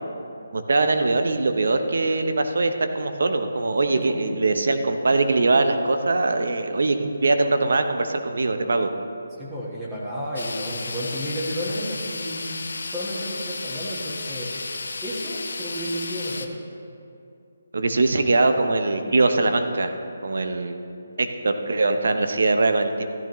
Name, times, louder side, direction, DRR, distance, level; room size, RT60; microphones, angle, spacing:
voice 1, 0.5-8.9 17.7-19.9 20.2-20.8 21.2-23.1, right 3 dB, 70° right, 7 dB, 0.8 m, -22 dB
voice 2, 3.9-4.3 9.4-14.5 15.0-16.5, equal, 10° right, -7 dB, 1.6 m, -32 dB
sound 1, 10.4-16.5, left 3 dB, 75° left, 0.8 m, -33 dB
13.5 x 11.5 x 3.1 m, 2.6 s
figure-of-eight pair, 160°, 0 cm